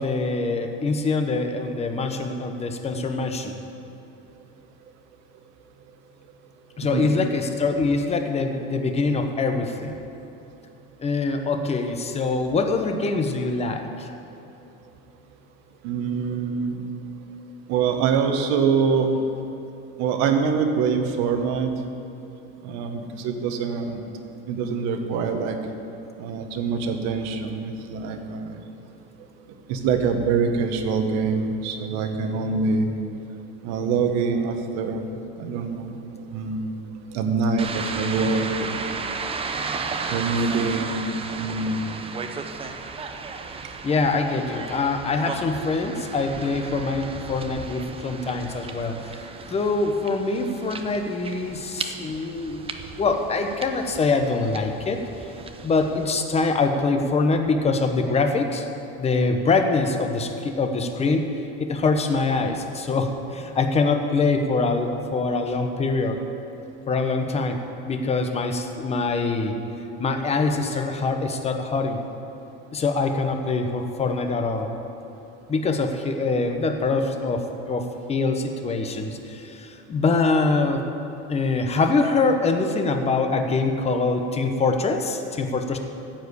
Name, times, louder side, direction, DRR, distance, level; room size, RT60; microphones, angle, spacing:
voice 1, 0.0-3.6 6.8-10.0 11.0-14.1 43.8-52.7 53.0-55.0 55.6-58.7 59.0-66.2 66.9-67.6 67.9-69.5 70.0-72.0 72.7-74.7 75.5-80.8 81.3-85.8, left 3 dB, 20° left, 5 dB, 1.0 m, -24 dB
voice 2, 15.8-16.8 17.7-19.1 20.0-21.7 22.6-24.0 24.5-25.6 26.2-28.6 29.7-32.9 33.6-35.1 35.4-36.0 36.3-36.8 37.1-38.7 40.1-41.0 41.4-41.9 45.2-45.3, right 5 dB, 65° right, 5 dB, 1.3 m, -24 dB
sound 1, 37.6-56.2, right 4 dB, 20° right, 0.6 m, -35 dB
14.5 x 5.0 x 8.2 m, 2.8 s
supercardioid pair, 130°, 29 cm